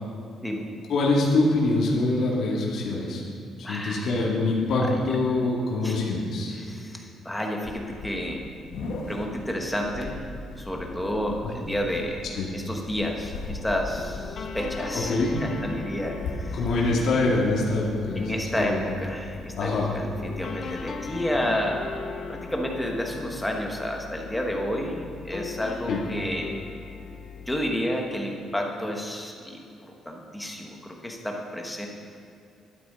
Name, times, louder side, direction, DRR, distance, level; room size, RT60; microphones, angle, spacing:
voice 1, 0.9-3.2 3.6-6.6 11.4-11.5 12.3-12.5 14.9-15.3 16.5-18.8 19.6-19.9 25.9-26.0, left 2 dB, 50° left, -3 dB, 2.1 m, -24 dB
voice 2, 3.6-4.2 4.8-4.9 5.8-6.1 6.5-8.4 9.1-10.2 10.6-12.3 12.5-15.1 15.4-16.6 18.2-22.0 22.3-26.6 27.5-29.6 30.0-31.9, equal, 5° left, 0 dB, 1.2 m, -30 dB
sound 1, 7.6-22.4, left 2 dB, 75° left, 1.6 m, -40 dB
sound 2, 13.1-27.8, left 5 dB, 35° left, 0.5 m, -39 dB
12.0 x 8.5 x 5.4 m, 2.6 s
cardioid pair, 180°, 0 cm